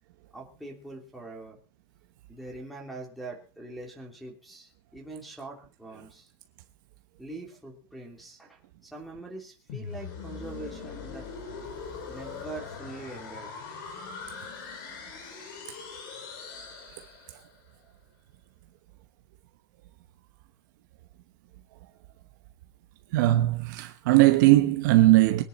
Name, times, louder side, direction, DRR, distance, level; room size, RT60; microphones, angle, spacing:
voice 1, 0.3-1.6 2.3-6.3 7.2-11.3 12.1-13.5, right 2 dB, ahead, 3.1 m, -43 dB
sound 1, 9.7-17.6, left 5 dB, 50° left, 4.1 m, -41 dB
voice 2, 23.1-25.4, right 17 dB, 45° right, 1.1 m, -19 dB
23.0 x 10.0 x 4.2 m
supercardioid pair, 180°, 14 cm